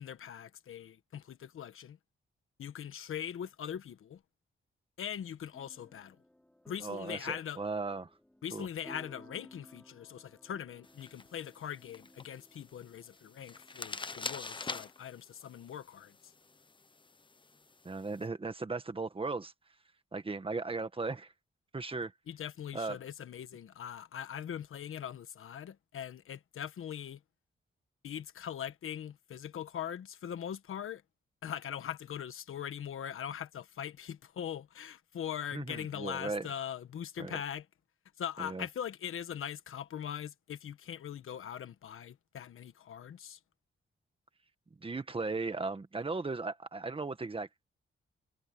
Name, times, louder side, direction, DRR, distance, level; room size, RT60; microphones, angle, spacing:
voice 1, 0.0-2.0 2.6-4.2 5.0-6.2 6.7-7.6 8.4-16.2 22.3-27.2 28.0-31.0 31.4-37.6 38.2-43.4, left 9 dB, 85° left, 1.4 m, -41 dB
sound 1, 5.5-15.2, left 1 dB, 5° left, 3.4 m, -58 dB
voice 2, 6.8-8.1 8.5-8.7 17.8-19.5 20.1-21.3 21.7-22.1 22.7-23.0 35.5-36.5 37.2-37.4 38.4-38.7 44.8-47.6, right 3 dB, 25° right, 1.7 m, -37 dB
sound 2, 10.8-18.3, left 3 dB, 25° left, 0.9 m, -46 dB
wide cardioid pair, 120°, 21 cm